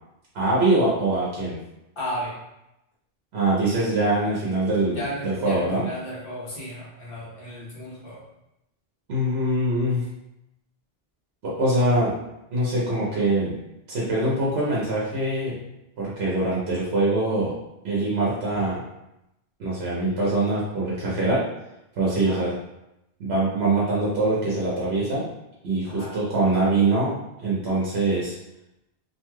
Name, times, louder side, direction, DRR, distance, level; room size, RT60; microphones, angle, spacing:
voice 1, 0.3-1.6 3.3-5.9 9.1-10.0 11.4-12.1 12.5-13.6 13.9-15.6 16.0-17.5 17.8-18.8 19.6-21.4 21.9-22.5 23.2-25.3 25.6-28.3, right 2 dB, 80° right, -7 dB, 1.1 m, -23 dB
voice 2, 2.0-2.3 4.9-8.2 22.2-22.5 25.8-26.2, equal, 60° left, -6 dB, 1.1 m, -34 dB
3.0 x 2.9 x 2.2 m, 0.89 s
omnidirectional pair, 1.1 m